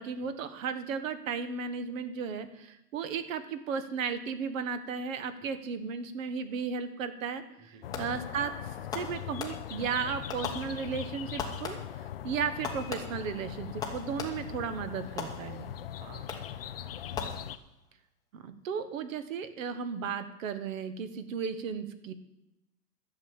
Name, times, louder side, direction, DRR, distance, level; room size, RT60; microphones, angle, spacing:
voice 1, 0.0-8.5 8.9-11.8 12.2-15.8 18.3-22.1, right 6 dB, 50° right, 11 dB, 1.4 m, -35 dB
voice 2, 7.6-7.9 15.9-17.1, right 5 dB, 15° right, 5 dB, 0.5 m, -56 dB
sound 1, 7.8-17.6, left 10 dB, 40° left, 0.4 m, -40 dB
Fireworks, 7.9-8.4 8.9-9.9 10.3-11.1 11.4-12.1 12.6-14.6 15.2-15.8 16.3-16.7 17.1-17.9, left 5 dB, 10° left, 1.0 m, -40 dB
12.0 x 6.9 x 8.9 m, 0.85 s
hypercardioid pair, 155°, 49 cm